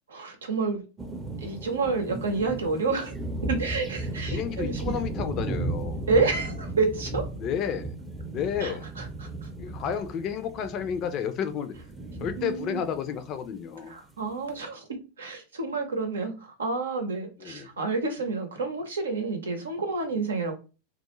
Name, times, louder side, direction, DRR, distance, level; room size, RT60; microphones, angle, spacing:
voice 1, 0.1-0.8 1.4-3.1 3.4-4.9 6.1-7.3 8.6-9.5 12.4-12.8 13.9-14.9 15.2-20.5, right 3 dB, 90° right, 0.7 m, -29 dB
sound 1, 1.0-13.6, right 2 dB, 15° right, 0.5 m, -35 dB
voice 2, 4.1-6.0 7.4-8.0 8.3-8.9 9.6-11.7 12.2-14.0 17.4-17.7, left 8 dB, 45° left, 0.5 m, -31 dB
2.3 x 2.1 x 3.0 m
hypercardioid pair, 100°, 0 cm